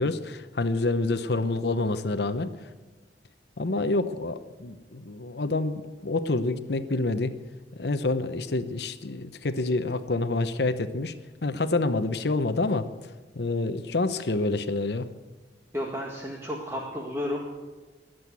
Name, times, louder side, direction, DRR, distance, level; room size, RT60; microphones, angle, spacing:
voice 1, 0.0-2.5 3.6-7.4 7.7-11.1 11.4-12.9 13.3-15.1, left 2 dB, 65° left, 11 dB, 0.8 m, -27 dB
voice 2, 15.7-17.4, left 1 dB, 15° right, -1 dB, 1.8 m, -32 dB
21.5 x 7.9 x 8.4 m, 1.2 s
head